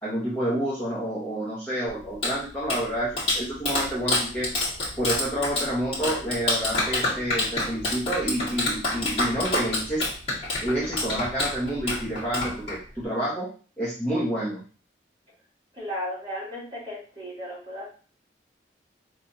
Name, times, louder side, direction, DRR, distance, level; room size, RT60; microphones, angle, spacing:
voice 1, 0.0-4.5 5.0-10.0 10.6-13.5 13.8-14.6, right 1 dB, 10° left, -9 dB, 1.3 m, -29 dB
Clapping, 1.9-13.0, left 2 dB, 30° left, 1.9 m, -28 dB
voice 2, 15.8-17.9, equal, 30° right, -7 dB, 2.6 m, -35 dB
5.0 x 3.6 x 2.8 m, 0.38 s
head